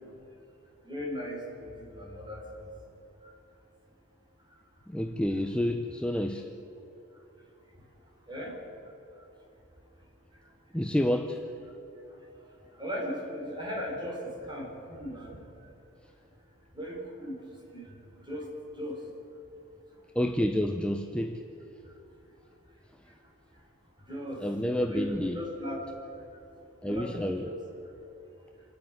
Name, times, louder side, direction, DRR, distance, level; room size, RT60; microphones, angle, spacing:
voice 1, 0.8-2.4 8.3-8.6 12.8-15.4 16.8-17.4 17.7-17.9 18.3-18.5 18.8-19.0 24.1-24.4 24.9-25.8 26.8-27.6, equal, 20° right, -2 dB, 4.6 m, -37 dB
voice 2, 4.9-6.5 10.7-11.4 20.1-21.4 24.4-25.4 26.8-27.5, left 1 dB, 5° left, 5 dB, 0.7 m, -29 dB
27.0 x 10.5 x 9.3 m, 3.0 s
head